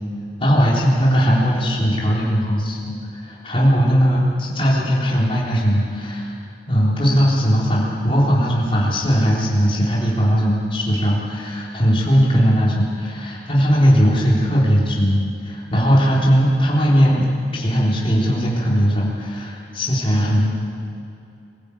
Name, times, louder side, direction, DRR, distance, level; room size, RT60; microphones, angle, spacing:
voice 1, 0.4-6.3 6.7-20.5, equal, 30° left, -5 dB, 4.0 m, -18 dB
23.5 x 15.5 x 8.7 m, 2.6 s
head